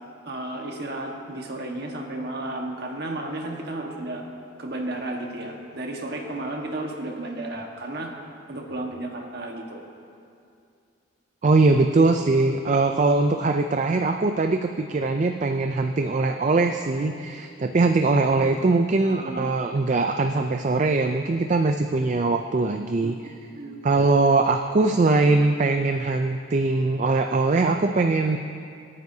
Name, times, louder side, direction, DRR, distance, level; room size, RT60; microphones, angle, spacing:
voice 1, 0.2-4.2 4.6-8.1 8.5-9.8 19.0-19.5 23.0-23.1 23.5-23.8, right 2 dB, 50° right, 1 dB, 1.4 m, -33 dB
voice 2, 11.4-23.3 23.8-28.4, right 3 dB, 35° right, 6 dB, 0.4 m, -21 dB
27.5 x 9.2 x 2.8 m, 2.5 s
head